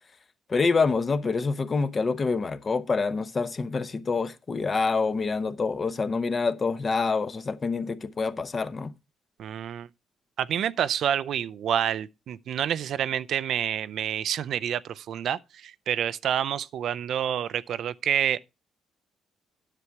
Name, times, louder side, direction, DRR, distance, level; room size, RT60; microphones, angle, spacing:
voice 1, 0.5-8.9, left 4 dB, 35° left, 0.8 m, -26 dB
voice 2, 9.4-9.9 10.4-18.4, right 9 dB, 70° right, 0.4 m, -28 dB
9.9 x 7.0 x 4.6 m
cardioid pair, 90°, 0 cm